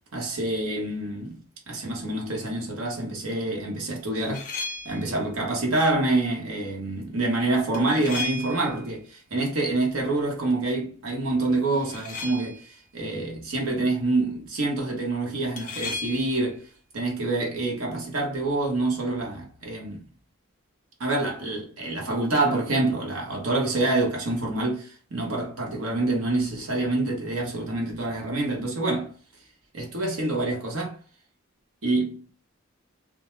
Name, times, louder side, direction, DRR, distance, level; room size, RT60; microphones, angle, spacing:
voice 1, 0.1-1.4 1.7-4.5 4.8-16.6 16.9-20.0 21.0-29.1 29.7-31.0 31.8-32.2, right 2 dB, 70° right, 0.8 m, -26 dB
sound 1, 4.1-5.2 7.7-8.9 11.7-12.7 15.6-16.5, left 3 dB, 35° left, 0.4 m, -35 dB
2.1 x 2.1 x 3.0 m
head